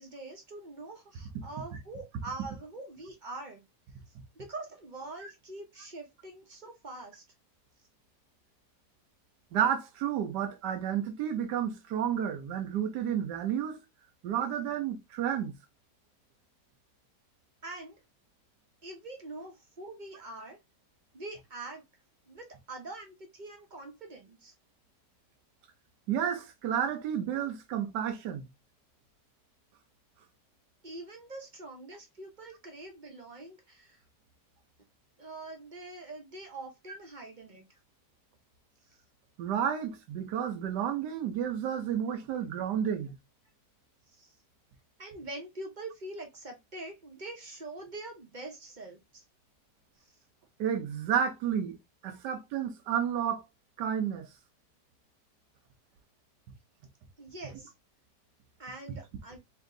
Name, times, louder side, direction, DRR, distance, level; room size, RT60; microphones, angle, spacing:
voice 1, 0.0-3.6 4.4-7.2 17.6-18.0 18.8-20.6 21.1-21.8 22.3-24.5 30.8-34.0 35.2-37.6 44.1-44.3 45.0-49.2 52.1-52.2 57.2-57.7 58.6-59.4, right 2 dB, 40° right, 0.7 m, -44 dB
voice 2, 9.5-13.8 14.2-15.5 26.1-28.4 39.4-43.1 50.6-51.8 52.0-53.4 53.8-54.3, right 9 dB, 75° right, 1.3 m, -31 dB
3.5 x 2.8 x 3.7 m
omnidirectional pair, 1.8 m